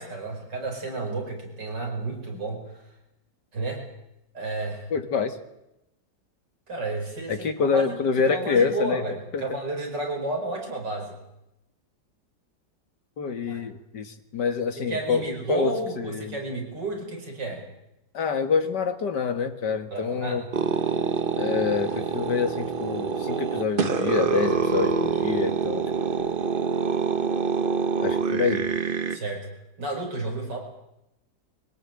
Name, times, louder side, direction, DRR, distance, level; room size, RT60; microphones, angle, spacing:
voice 1, 0.0-2.6 3.5-3.8 4.3-4.9 6.7-8.0 8.3-11.2 13.5-13.6 14.9-17.6 19.9-20.4 29.1-29.5 29.8-30.6, right 2 dB, 85° right, 2 dB, 5.6 m, -31 dB
voice 2, 4.9-5.4 7.3-9.0 9.3-9.4 13.2-16.4 18.1-20.4 21.4-26.4 28.0-28.7, left 5 dB, 75° left, 8 dB, 2.5 m, -26 dB
sound 1, 20.5-29.2, right 5 dB, 35° right, 1.1 m, -26 dB
23.0 x 17.5 x 9.0 m, 0.89 s
omnidirectional pair, 1.9 m